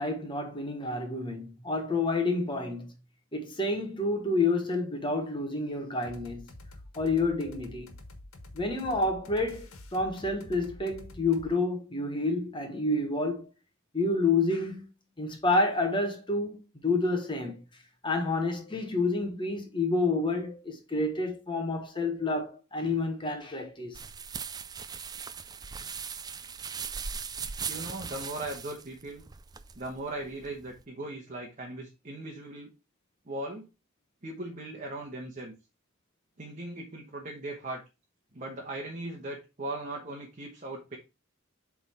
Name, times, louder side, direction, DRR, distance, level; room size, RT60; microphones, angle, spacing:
voice 1, 0.0-2.9 3.3-6.4 6.9-7.9 8.5-13.5 13.9-14.8 15.2-17.6 18.0-24.0, left 2 dB, 25° left, 1.3 m, -29 dB
sound 1, 6.0-11.5, left 1 dB, 85° left, 1.4 m, -47 dB
sound 2, 23.9-30.8, right 6 dB, 20° right, 0.3 m, -39 dB
voice 2, 27.7-29.2 29.7-32.7 33.3-33.7 34.2-35.5 36.4-37.8 38.3-41.0, right 2 dB, 35° right, 1.2 m, -38 dB
7.9 x 3.6 x 4.3 m
head